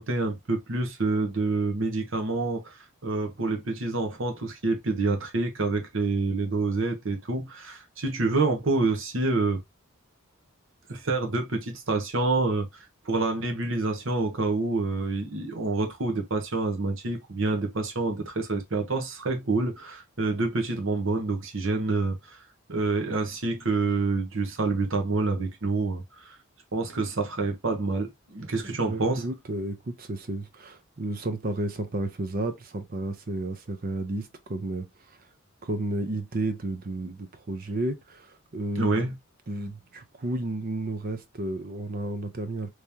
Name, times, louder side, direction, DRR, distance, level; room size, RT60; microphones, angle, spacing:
voice 1, 0.0-2.8 3.0-9.6 10.9-12.7 13.0-22.4 22.7-26.4 26.7-29.2 38.8-39.1, right 3 dB, 65° right, 1.0 m, -27 dB
voice 2, 28.8-35.2 35.6-39.1 39.5-42.7, right 2 dB, 45° right, 0.6 m, -32 dB
3.5 x 3.2 x 2.7 m
head